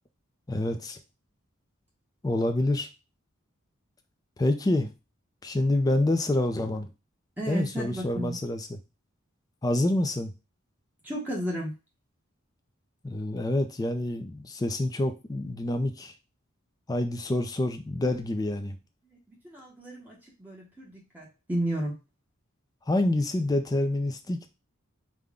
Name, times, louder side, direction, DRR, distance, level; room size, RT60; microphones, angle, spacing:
voice 1, 0.5-1.0 2.2-2.9 4.4-4.9 5.4-6.9 7.5-8.8 9.6-10.3 13.0-16.1 16.9-18.8 22.9-24.5, left 1 dB, 20° left, 7 dB, 0.4 m, -27 dB
voice 2, 7.4-8.4 11.0-11.7 19.3-21.9, right 1 dB, 10° right, -4 dB, 0.8 m, -33 dB
3.7 x 2.1 x 3.5 m, 0.28 s
head